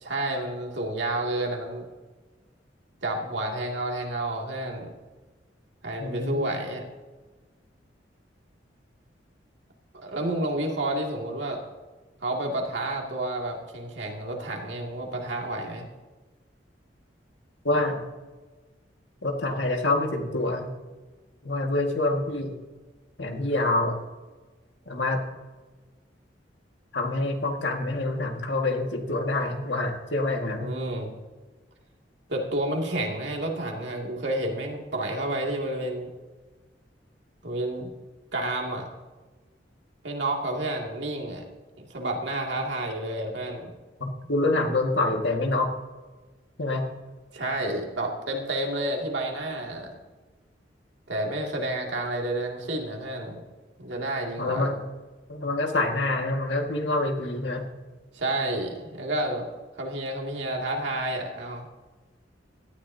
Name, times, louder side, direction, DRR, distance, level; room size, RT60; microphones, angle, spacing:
voice 1, 0.0-1.8 3.0-4.9 5.8-6.8 10.0-11.6 12.2-15.9 30.6-31.1 32.3-36.1 37.4-37.9 38.3-38.9 40.0-41.4 41.8-43.7 47.3-49.9 51.1-53.4 53.8-54.7 58.1-59.5 59.8-61.7, right 1 dB, 75° right, 0 dB, 2.4 m, -30 dB
voice 2, 6.0-6.5 17.6-18.0 19.2-20.7 21.4-22.5 23.2-24.0 24.9-25.3 26.9-30.7 44.0-45.7 46.6-46.9 54.4-54.8 55.3-57.7, left 2 dB, 75° left, 2 dB, 1.9 m, -26 dB
17.5 x 13.0 x 2.8 m, 1.3 s
head